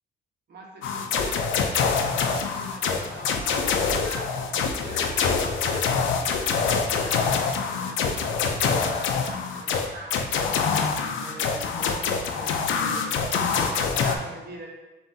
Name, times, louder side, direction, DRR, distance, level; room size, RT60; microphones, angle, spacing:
voice 1, 0.5-14.7, right 2 dB, 55° right, -2 dB, 1.0 m, -43 dB
sound 1, 0.8-14.2, left 5 dB, 75° left, 0.5 m, -25 dB
7.1 x 2.6 x 2.7 m, 1.1 s
cardioid pair, 90°, 20 cm